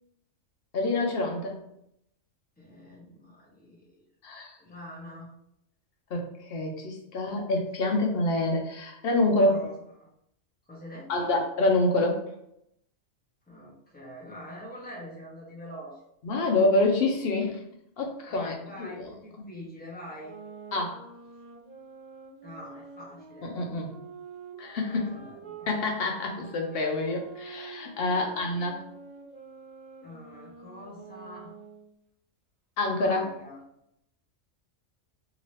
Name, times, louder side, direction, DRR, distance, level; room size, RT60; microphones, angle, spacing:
voice 1, 0.7-1.6 4.2-4.5 6.1-9.6 11.1-12.3 16.2-17.5 18.0-19.0 20.7-21.0 23.4-23.9 24.6-25.2 25.7-28.8 32.8-33.2, left 2 dB, 55° left, 1 dB, 0.8 m, -27 dB
voice 2, 2.6-4.0 4.6-5.3 9.4-10.1 10.7-11.3 13.5-16.0 18.3-20.4 22.4-23.6 24.9-25.7 28.1-28.6 30.0-31.5 33.0-33.6, equal, 10° left, -4 dB, 0.8 m, -45 dB
sound 1, 20.1-25.7 26.3-31.9, right 5 dB, 50° right, 0.6 m, -47 dB
2.8 x 2.7 x 3.2 m, 0.77 s
omnidirectional pair, 1.3 m